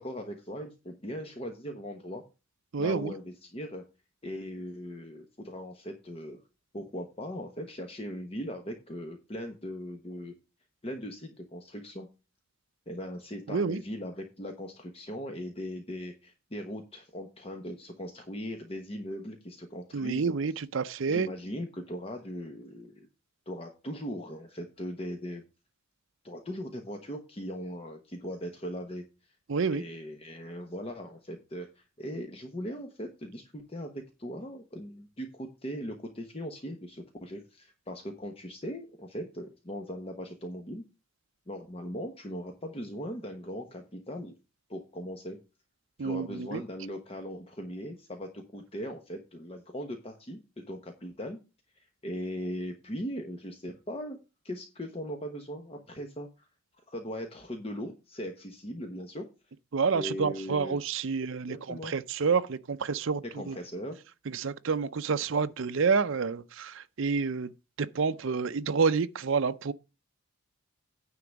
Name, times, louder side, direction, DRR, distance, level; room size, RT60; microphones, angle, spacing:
voice 1, 0.0-2.2 2.8-3.8 4.2-6.4 6.7-10.3 10.8-12.1 12.9-20.3 21.1-23.1 23.5-25.4 26.2-29.0 29.7-40.8 41.5-44.3 44.7-45.4 46.0-51.4 51.8-54.2 54.4-56.5 56.9-59.3 59.9-60.8 61.5-61.9 63.3-64.0, equal, 25° left, 1.0 m, -39 dB
voice 2, 2.7-3.1 13.5-13.8 19.9-21.3 29.5-29.8 46.0-46.6 59.7-63.6 64.3-67.5 67.8-69.7, right 5 dB, 60° right, 0.5 m, -29 dB
9.6 x 3.8 x 7.0 m
head